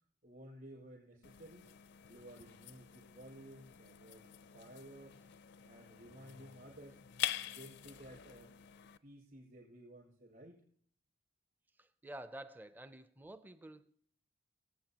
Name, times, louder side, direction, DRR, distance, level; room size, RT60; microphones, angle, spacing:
voice 1, 0.2-1.7 2.1-5.2 5.6-7.0 7.5-8.5 9.0-10.6, right 1 dB, 50° right, 5.4 m, -55 dB
sound 1, 1.2-9.0, left 12 dB, 60° left, 0.4 m, -46 dB
voice 2, 11.8-13.9, right 1 dB, 10° right, 0.5 m, -50 dB
25.0 x 8.3 x 2.9 m
head